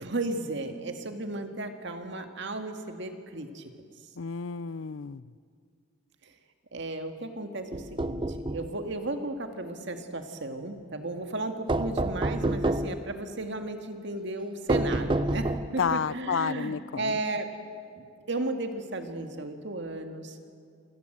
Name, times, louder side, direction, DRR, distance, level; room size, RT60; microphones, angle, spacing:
voice 1, 0.0-3.6 6.7-8.2 8.5-17.5 18.3-20.3, right 2 dB, 65° right, 6 dB, 1.9 m, -34 dB
voice 2, 4.2-5.3 15.8-17.2, left 6 dB, 75° left, 19 dB, 0.5 m, -30 dB
sound 1, 7.7-8.7 11.7-13.0 14.7-15.8, right 2 dB, 25° right, 0.6 m, -28 dB
27.0 x 16.5 x 7.9 m, 2.3 s
head